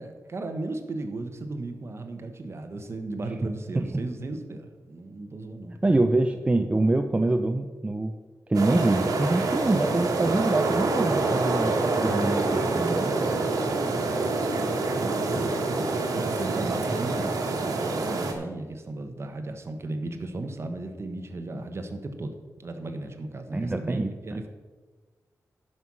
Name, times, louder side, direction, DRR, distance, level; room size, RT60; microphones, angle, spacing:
voice 1, 0.0-6.0 12.6-14.3 15.0-22.3 22.6-24.5, right 2 dB, 45° right, 6 dB, 1.3 m, -36 dB
voice 2, 5.8-8.1 8.5-13.4 23.5-24.4, right 2 dB, 20° right, 7 dB, 0.5 m, -25 dB
sound 1, 8.5-18.3, right 3 dB, 90° right, 1.4 m, -26 dB
11.0 x 5.6 x 6.2 m, 1.4 s
wide cardioid pair, 95°, 6 cm